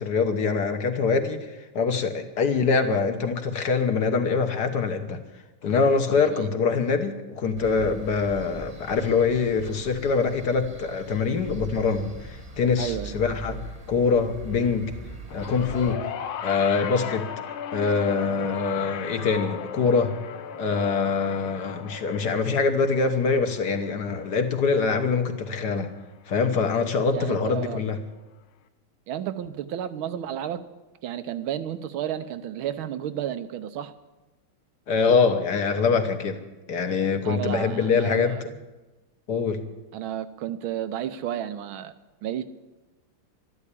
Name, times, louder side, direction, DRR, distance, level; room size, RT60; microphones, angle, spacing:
voice 1, 0.0-5.2 5.6-13.6 13.9-14.9 15.3-16.1 16.4-17.3 17.7-20.1 20.6-25.9 26.3-28.0 34.9-36.4 36.7-38.4 39.3-39.6, left 5 dB, 55° left, 7 dB, 1.6 m, -24 dB
sound 1, 7.6-16.0, right 4 dB, 20° right, 1.2 m, -41 dB
voice 2, 12.8-13.1 27.1-27.8 29.1-30.6 31.0-33.9 37.2-38.4 39.9-41.9 42.2-42.4, right 10 dB, 80° right, 12 dB, 1.6 m, -32 dB
sound 2, 15.3-25.7 26.8-26.9, left 8 dB, 80° left, 1.7 m, -37 dB
12.5 x 12.5 x 8.4 m, 1.1 s
omnidirectional pair, 2.3 m